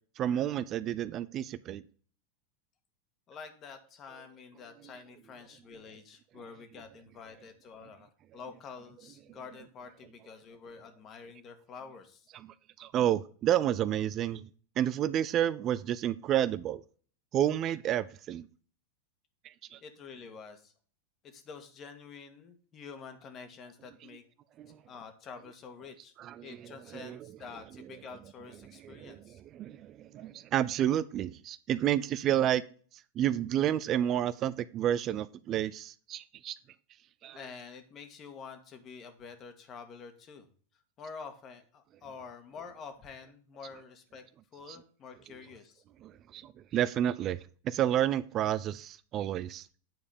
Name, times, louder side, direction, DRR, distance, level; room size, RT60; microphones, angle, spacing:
voice 1, 0.2-1.8 12.3-14.5 14.8-16.8 17.3-18.5 19.4-19.8 24.6-24.8 26.2-27.3 28.8-32.6 32.9-36.6 37.2-37.4 44.7-44.8 46.0-47.4 47.6-49.7, right 11 dB, 40° right, 16 dB, 0.4 m, -30 dB
voice 2, 3.3-12.3 19.8-20.7 21.2-24.2 24.9-26.1 26.4-29.4 37.3-40.5 41.0-44.3 44.5-45.8, left 5 dB, 35° left, 8 dB, 1.8 m, -48 dB
9.3 x 4.8 x 5.1 m, 0.43 s
hypercardioid pair, 95°, 0 cm